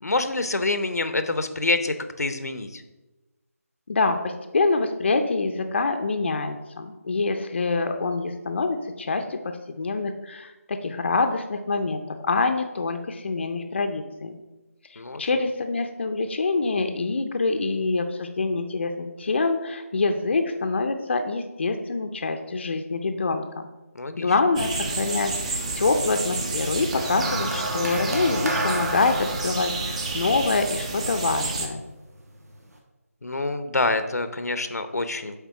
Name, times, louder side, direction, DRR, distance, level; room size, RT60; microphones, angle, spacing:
voice 1, 0.0-2.8 15.0-15.2 23.9-24.3 33.2-35.4, left 2 dB, 90° left, 10 dB, 0.7 m, -26 dB
voice 2, 3.9-14.4 14.9-23.7 24.2-31.8, left 3 dB, 45° left, 6 dB, 0.5 m, -26 dB
sound 1, 24.5-31.7, right 3 dB, 25° right, 0.6 m, -30 dB
sound 2, 26.9-31.4 32.3-32.5, right 2 dB, 80° right, 1.4 m, -30 dB
8.2 x 3.6 x 4.7 m, 1.1 s
figure-of-eight pair, 165°, 8 cm